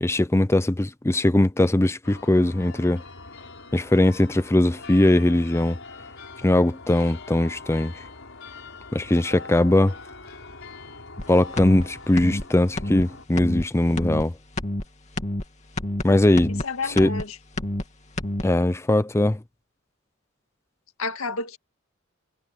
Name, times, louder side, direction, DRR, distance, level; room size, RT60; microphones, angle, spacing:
voice 1, 0.0-3.0 3.7-5.8 6.4-7.9 8.9-9.9 11.3-14.3 16.0-16.5 16.9-17.1 18.4-19.4, left 1 dB, 15° left, 0.5 m, -20 dB
sound 1, 2.0-13.3, left 3 dB, 65° left, 6.1 m, -43 dB
sound 2, 11.2-11.3 11.6-11.8 12.2-12.4 12.8-13.0 13.4-13.6 14.0-14.3 14.6-14.8 15.2-15.4 15.8-16.0 16.4-16.6 17.0-17.2 17.6-17.8 18.2-18.4, left 1 dB, 35° left, 2.5 m, -28 dB
voice 2, 16.6-17.4 21.0-21.6, left 4 dB, 85° left, 1.9 m, -30 dB
head